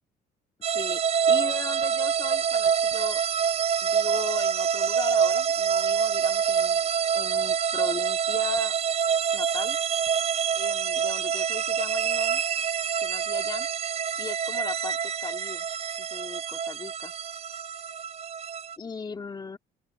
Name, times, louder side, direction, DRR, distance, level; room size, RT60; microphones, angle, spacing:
sound 1, 0.6-18.8, right 7 dB, 35° right, 0.6 m, -26 dB
voice 1, 1.3-3.2 3.8-6.9 7.1-8.7 9.3-9.8 10.6-12.4 13.0-13.7 14.2-15.7 16.0-17.1 18.8-19.6, left 4 dB, 25° left, 2.2 m, -38 dB
open air
cardioid pair, 110°, 17 cm